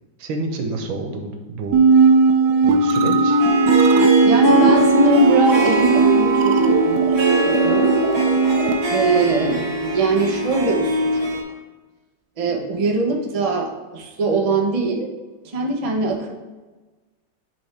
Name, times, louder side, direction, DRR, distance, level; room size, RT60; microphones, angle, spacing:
voice 1, 0.2-1.8 2.6-3.4, right 2 dB, 90° right, 4 dB, 1.7 m, -28 dB
sound 1, 1.7-8.8, right 4 dB, 75° right, 1.1 m, -16 dB
Harp, 3.4-11.4, equal, 55° right, 1.8 m, -23 dB
voice 2, 3.9-8.0 8.9-11.4 12.4-15.1 15.4-16.3, right 2 dB, 35° right, 1 dB, 0.5 m, -22 dB
10.0 x 3.5 x 3.4 m, 1.2 s
omnidirectional pair, 2.0 m